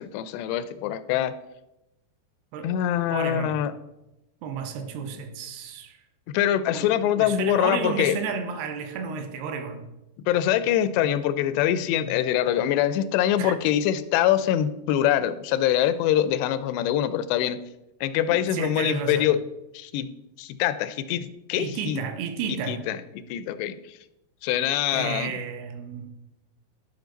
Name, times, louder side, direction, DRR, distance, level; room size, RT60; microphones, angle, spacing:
voice 1, 0.0-1.3 2.6-3.7 6.3-8.2 10.3-17.6 18.0-19.4 19.7-20.1 20.4-22.0 22.5-23.0 23.3-24.0 24.4-25.3, left 11 dB, 90° left, 2.7 m, -24 dB
voice 2, 3.1-3.6 4.4-6.0 6.7-9.9 13.4-13.5 18.3-19.3 21.6-22.8 24.9-26.1, right 6 dB, 80° right, 2.7 m, -32 dB
13.0 x 5.2 x 3.9 m
omnidirectional pair, 4.7 m